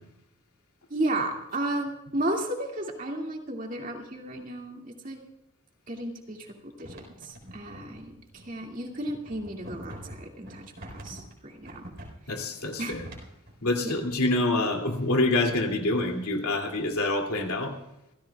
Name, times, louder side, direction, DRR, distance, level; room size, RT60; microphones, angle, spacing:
voice 1, 0.9-5.2 5.9-6.4 6.8-11.8 12.8-12.9 13.8-13.9, right 1 dB, 35° right, 1 dB, 2.3 m, -33 dB
sound 1, 6.8-13.6, right 1 dB, 55° right, 4.2 m, -45 dB
voice 2, 12.3-13.1 13.6-17.7, left 2 dB, 85° left, 2 dB, 2.7 m, -26 dB
27.5 x 15.5 x 2.4 m, 0.89 s
head